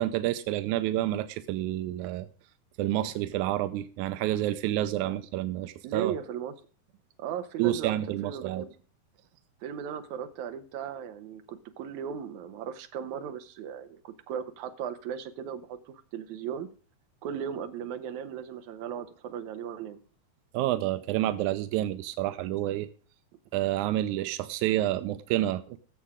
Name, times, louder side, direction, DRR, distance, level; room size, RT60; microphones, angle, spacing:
voice 1, 0.0-2.3 2.8-6.1 7.6-8.7 20.5-22.9 23.5-25.8, right 14 dB, 85° right, 1.7 m, -29 dB
voice 2, 5.8-6.5 7.2-8.0 8.2-8.7 9.6-16.7 17.2-20.0, right 8 dB, 65° right, 2.0 m, -37 dB
18.5 x 7.3 x 3.6 m
omnidirectional pair, 4.2 m